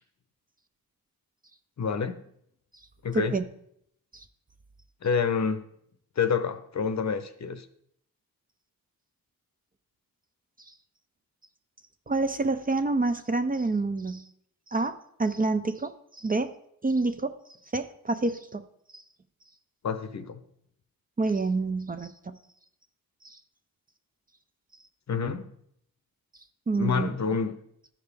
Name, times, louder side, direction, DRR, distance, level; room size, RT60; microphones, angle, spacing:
voice 1, 1.8-2.2 3.0-3.3 5.0-5.7 6.2-7.6 19.8-20.4 25.1-25.5 26.8-27.5, left 6 dB, 50° left, 10 dB, 0.8 m, -28 dB
voice 2, 3.1-3.4 4.1-4.2 10.7-10.8 12.1-14.3 14.7-14.9 15.2-16.5 16.8-17.3 17.7-18.6 18.9-19.0 21.2-22.4 23.2-23.4 26.7-27.1, right 3 dB, 25° right, 8 dB, 0.5 m, -28 dB
13.0 x 5.0 x 3.4 m, 0.72 s
cardioid pair, 75°, 36 cm